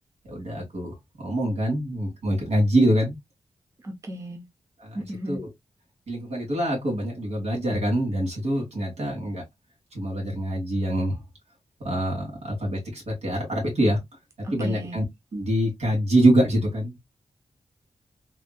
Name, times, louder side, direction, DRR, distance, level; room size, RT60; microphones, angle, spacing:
voice 1, 0.3-3.2 4.8-5.0 5.3-5.5 6.1-9.4 9.9-11.2 11.8-14.0 14.5-15.0 15.3-17.0, right 1 dB, 85° right, 2.0 m, -25 dB
voice 2, 3.8-4.4 4.9-5.4 14.4-15.0, equal, 30° right, 0.6 m, -35 dB
3.5 x 2.6 x 2.3 m
wide cardioid pair, 145°, 11 cm